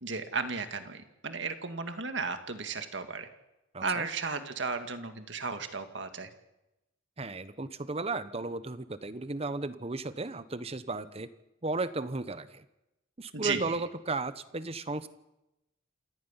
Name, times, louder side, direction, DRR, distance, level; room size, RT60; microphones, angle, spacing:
voice 1, 0.0-3.3 3.8-6.3 13.3-13.7, right 4 dB, 65° right, 8 dB, 2.0 m, -34 dB
voice 2, 3.7-4.1 7.2-11.3 11.6-12.6 13.2-15.1, right 3 dB, 30° right, 14 dB, 1.0 m, -35 dB
28.0 x 9.5 x 9.8 m, 0.92 s
head